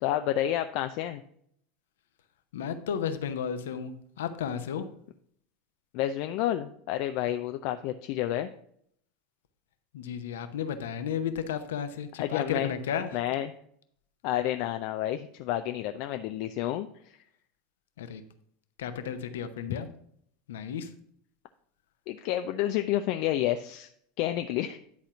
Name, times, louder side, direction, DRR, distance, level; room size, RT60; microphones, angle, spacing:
voice 1, 0.0-1.2 5.9-8.5 12.2-12.7 13.1-13.5 14.2-17.2 22.1-23.9 24.2-24.8, left 12 dB, 60° left, 8 dB, 0.4 m, -30 dB
voice 2, 2.5-3.9 4.2-4.9 9.9-13.2 18.0-18.2 18.8-19.9 20.5-20.9, left 8 dB, 75° left, 9 dB, 0.9 m, -33 dB
10.5 x 4.3 x 5.9 m, 0.67 s
hypercardioid pair, 80°, 0 cm